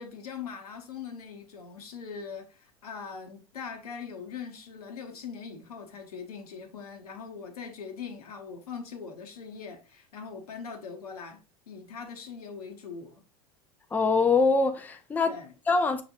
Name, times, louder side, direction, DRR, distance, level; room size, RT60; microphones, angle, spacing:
voice 1, 0.0-13.2 15.3-15.5, left 6 dB, 80° left, 1.1 m, -41 dB
voice 2, 13.9-15.4 15.7-16.0, left 4 dB, 10° left, 0.5 m, -24 dB
5.9 x 3.2 x 2.5 m
hypercardioid pair, 95°, 19 cm